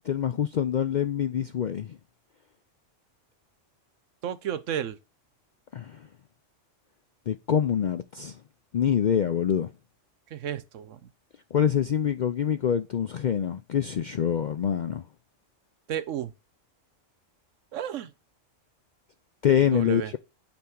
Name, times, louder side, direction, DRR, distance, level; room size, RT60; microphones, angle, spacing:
voice 1, 0.1-2.0 5.7-6.0 7.3-8.4 8.7-9.7 11.5-15.0 19.4-20.2, left 8 dB, 65° left, 0.4 m, -25 dB
voice 2, 4.2-5.0 10.3-11.1 15.9-16.3 17.7-18.1 19.7-20.1, right 9 dB, 80° right, 1.1 m, -32 dB
8.4 x 4.5 x 3.7 m
omnidirectional pair, 1.3 m